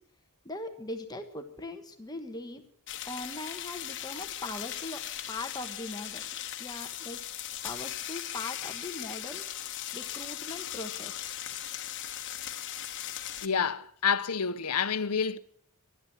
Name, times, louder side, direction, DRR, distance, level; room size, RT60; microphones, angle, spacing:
voice 1, 0.4-2.6 3.0-5.0 5.3-6.2 6.6-7.2 7.6-9.4 9.9-11.3, left 2 dB, 20° left, 1.3 m, -40 dB
sound 1, 2.9-13.5, left 11 dB, 55° left, 1.3 m, -38 dB
voice 2, 13.4-15.4, left 6 dB, 85° left, 0.9 m, -28 dB
12.5 x 11.5 x 9.9 m
head